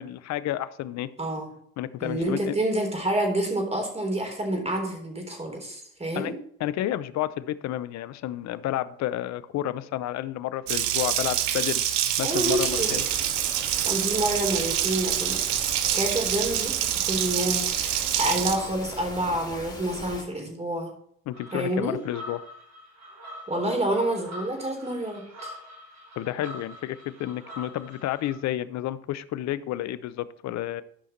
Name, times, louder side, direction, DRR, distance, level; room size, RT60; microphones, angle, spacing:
voice 1, 0.0-1.1 1.8-2.5 6.1-11.8 12.2-13.1 21.3-22.4 26.2-30.8, left 13 dB, 60° left, 16 dB, 0.7 m, -31 dB
voice 2, 1.2-1.5 2.0-6.4 12.2-13.0 13.8-15.4 15.8-20.9 21.5-22.0 23.5-25.5, right 1 dB, 20° right, 3 dB, 3.7 m, -28 dB
Water tap faucet, 10.7-18.6, right 11 dB, 80° right, 0.8 m, -26 dB
sound 1, 12.3-20.2, left 1 dB, 15° left, 3.6 m, -40 dB
sound 2, 21.3-28.4, left 1 dB, 60° right, 4.2 m, -44 dB
12.5 x 5.7 x 4.4 m, 0.66 s
hypercardioid pair, 60°, 30 cm